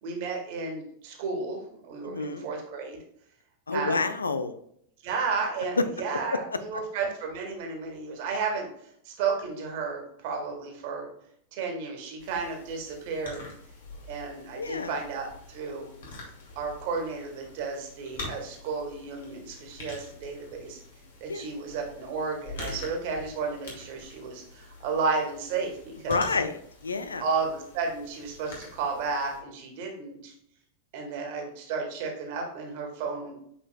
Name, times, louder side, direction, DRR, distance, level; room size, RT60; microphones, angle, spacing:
voice 1, 0.0-3.0 3.7-4.0 5.0-8.7 9.1-11.1 11.5-13.5 14.1-15.9 16.6-20.8 21.2-26.2 27.2-30.3 30.9-33.4, right 4 dB, 50° right, 2 dB, 1.9 m, -33 dB
voice 2, 2.0-2.5 3.7-4.5 14.5-14.9 21.3-21.5 26.1-27.2, left 4 dB, 75° left, 11 dB, 0.5 m, -29 dB
sound 1, 12.2-29.4, left 2 dB, 60° left, 2.4 m, -45 dB
8.4 x 5.2 x 2.2 m, 0.71 s
figure-of-eight pair, 90°, 0 cm